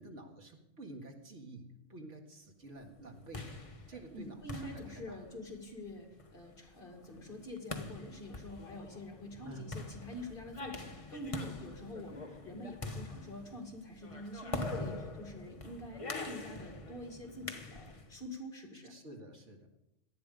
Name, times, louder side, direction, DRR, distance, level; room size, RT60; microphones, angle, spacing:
voice 1, 0.0-3.5 3.9-5.2 9.4-9.8 18.9-19.8, right 2 dB, 80° right, 3 dB, 2.4 m, -50 dB
sound 1, 3.0-18.2, left 2 dB, 30° left, 1.3 m, -44 dB
voice 2, 4.1-19.0, left 1 dB, 45° left, 3 dB, 2.7 m, -46 dB
18.5 x 12.5 x 5.2 m, 0.85 s
omnidirectional pair, 1.2 m